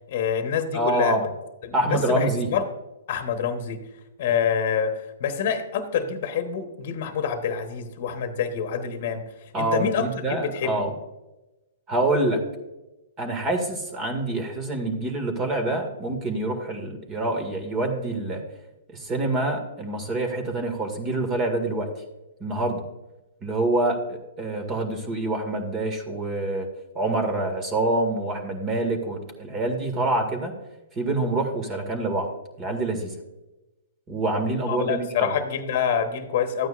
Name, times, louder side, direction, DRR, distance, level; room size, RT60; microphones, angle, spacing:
voice 1, 0.1-1.3 1.6-2.7 3.1-3.8 4.2-11.0 34.7-36.7, left 7 dB, 55° left, 8 dB, 1.1 m, -27 dB
voice 2, 0.7-1.2 1.7-2.5 9.5-10.9 11.9-12.4 13.2-18.4 18.9-21.9 22.4-22.8 23.4-26.7 27.0-30.5 31.0-32.3 32.6-33.1 34.1-35.3, right 2 dB, 25° right, 5 dB, 2.0 m, -26 dB
12.5 x 9.2 x 2.5 m, 1.0 s
hypercardioid pair, 125°, 0 cm